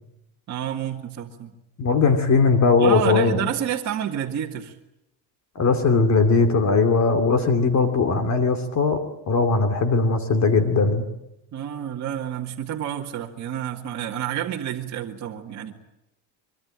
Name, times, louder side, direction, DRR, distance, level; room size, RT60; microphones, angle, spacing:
voice 1, 0.5-1.5 2.8-4.8 11.5-15.7, right 10 dB, 40° right, -1 dB, 2.2 m, -29 dB
voice 2, 1.8-3.3 5.6-11.0, left 4 dB, 35° left, 7 dB, 2.7 m, -19 dB
24.5 x 23.5 x 9.0 m, 0.85 s
cardioid pair, 150°, 45 cm